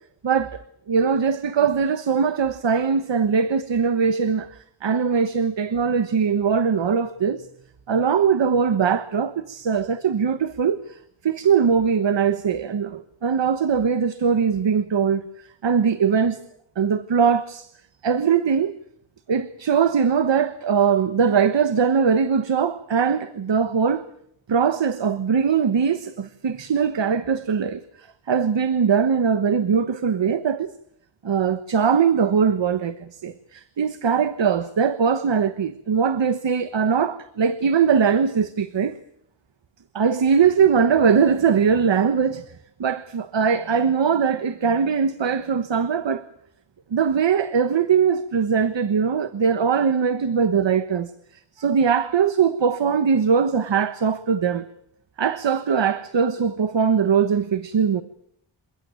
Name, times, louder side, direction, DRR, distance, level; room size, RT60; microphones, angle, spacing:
voice 1, 0.2-0.6 0.9-7.5 7.9-16.4 16.8-17.7 18.0-18.7 19.3-24.1 24.5-30.7 31.2-39.0 39.9-42.5 42.8-46.3 46.9-51.1 51.6-54.6 55.2-58.0, right 6 dB, 60° right, 1.3 m, -21 dB
28.0 x 16.0 x 9.5 m
wide cardioid pair, 140°, 49 cm